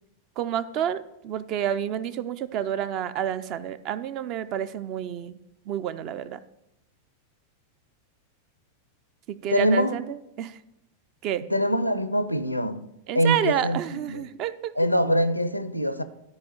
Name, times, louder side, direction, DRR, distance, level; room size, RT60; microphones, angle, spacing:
voice 1, 0.4-5.4 5.7-6.4 9.3-10.6 11.2-11.4 13.1-14.7, right 10 dB, 40° right, 0.4 m, -29 dB
voice 2, 9.5-9.9 11.5-12.9 13.1-14.2 14.8-16.0, equal, 90° left, 0.5 m, -24 dB
13.0 x 4.8 x 4.4 m
figure-of-eight pair, 90°, 0 cm